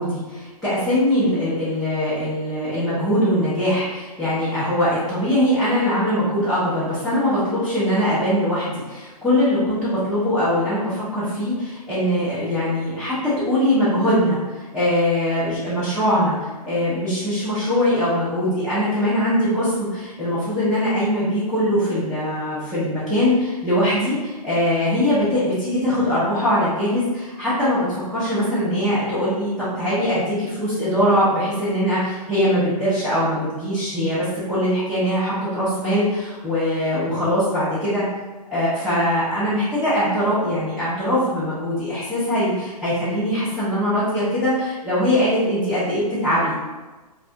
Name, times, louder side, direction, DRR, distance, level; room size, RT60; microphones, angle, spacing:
voice 1, 0.0-38.0 38.5-46.6, equal, ahead, -16 dB, 0.3 m, -22 dB
2.3 x 2.3 x 2.6 m, 1.2 s
figure-of-eight pair, 125°, 21 cm